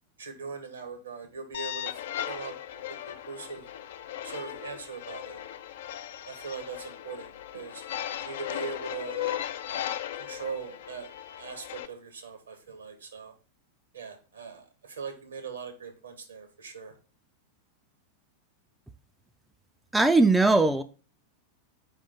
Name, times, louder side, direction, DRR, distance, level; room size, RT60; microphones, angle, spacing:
voice 1, 0.2-2.5 3.1-3.6 4.2-5.4 5.8-7.8 8.2-9.4 9.7-9.9 10.2-11.1 11.4-13.3 13.9-16.9, right 5 dB, 75° right, 5 dB, 1.4 m, -40 dB
sound 1, 1.5-11.9, left 11 dB, 60° left, 0.4 m, -37 dB
voice 2, 19.9-20.8, right 3 dB, 5° right, 8 dB, 0.4 m, -20 dB
4.9 x 3.6 x 5.4 m, 0.35 s
figure-of-eight pair, 90°, 0 cm